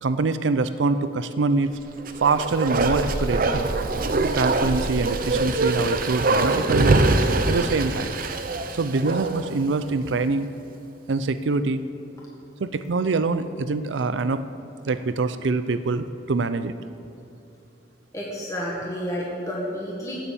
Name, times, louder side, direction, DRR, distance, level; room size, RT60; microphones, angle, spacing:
voice 1, 0.0-1.8 2.2-3.7 4.3-7.0 7.5-8.1 8.7-10.5 11.1-11.8 12.6-14.4 14.9-16.7, right 3 dB, 85° right, 12 dB, 0.5 m, -24 dB
Bark, 2.0-9.6 9.9-10.0, right 2 dB, 50° right, 0.7 m, -23 dB
voice 2, 18.1-20.1, equal, 20° left, -5 dB, 1.6 m, -30 dB
16.5 x 7.1 x 7.0 m, 2.6 s
head